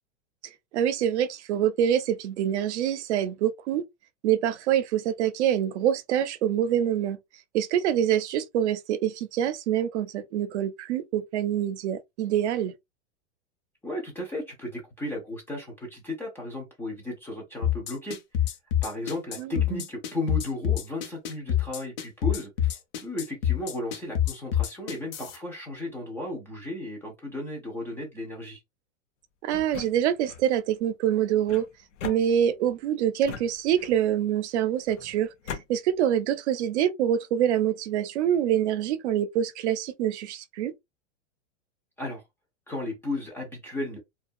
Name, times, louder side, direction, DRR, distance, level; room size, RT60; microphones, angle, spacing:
voice 1, 0.7-3.8 4.2-7.2 7.5-12.7 19.4-19.8 29.4-31.6 32.0-40.7, right 10 dB, 70° right, 0.6 m, -25 dB
voice 2, 13.8-18.2 18.8-28.6 42.0-42.2 42.7-44.0, left 1 dB, 5° left, 0.4 m, -35 dB
sound 1, 17.6-25.4, left 11 dB, 55° left, 0.8 m, -26 dB
sound 2, 29.5-30.5 31.5-32.7 33.2-34.1 34.9-35.7, left 7 dB, 85° left, 0.7 m, -40 dB
2.5 x 2.3 x 2.5 m
supercardioid pair, 145°, 36 cm